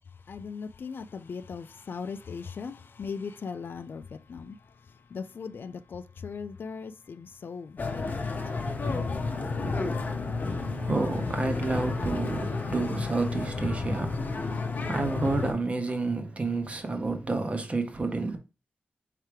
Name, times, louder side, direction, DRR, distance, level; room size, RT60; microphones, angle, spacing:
voice 1, 0.1-9.2 9.5-9.6, left 5 dB, 65° left, 0.3 m, -39 dB
sound 1, 7.8-15.5, left 3 dB, 50° left, 0.7 m, -31 dB
voice 2, 10.5-18.4, right 3 dB, 35° right, 0.9 m, -30 dB
4.7 x 3.3 x 3.3 m
wide cardioid pair, 125°, 4 cm